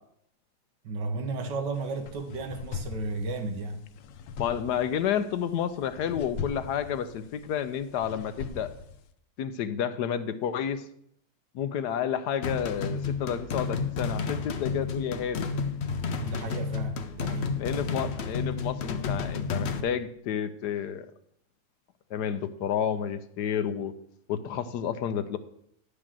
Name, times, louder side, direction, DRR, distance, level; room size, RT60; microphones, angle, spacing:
voice 1, 0.8-3.9 16.1-17.6, right 2 dB, 75° right, 1.8 m, -33 dB
sound 1, 1.7-9.1, left 5 dB, 90° left, 1.4 m, -41 dB
voice 2, 4.4-8.7 9.4-10.8 11.5-15.5 17.6-21.1 22.1-23.9 24.3-25.4, left 8 dB, 75° left, 1.1 m, -30 dB
sound 2, 12.4-19.8, left 5 dB, 55° left, 0.8 m, -31 dB
10.5 x 5.0 x 7.4 m
omnidirectional pair, 1.9 m